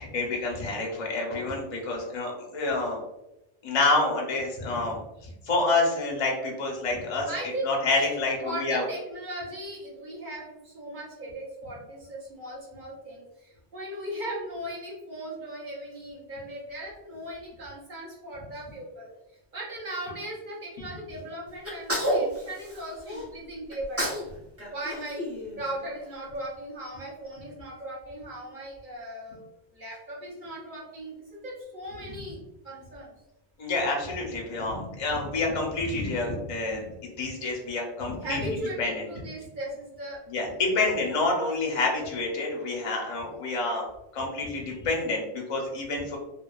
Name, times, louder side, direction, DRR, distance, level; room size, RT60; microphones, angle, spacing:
voice 1, 0.0-3.0 3.6-7.3 7.6-8.8 33.6-38.4 38.8-38.9 40.3-43.8 44.1-46.2, left 3 dB, 40° left, 0 dB, 0.5 m, -28 dB
voice 2, 7.3-19.1 19.5-24.2 24.7-25.3 25.6-29.5 29.7-32.4 32.6-33.1 38.2-40.2 40.7-41.4, right 1 dB, 50° right, -4 dB, 0.9 m, -38 dB
Sneeze, 21.6-23.2 23.7-24.3 24.6-26.0, equal, 20° right, 0.4 m, -30 dB
2.7 x 2.2 x 2.2 m, 0.90 s
omnidirectional pair, 1.1 m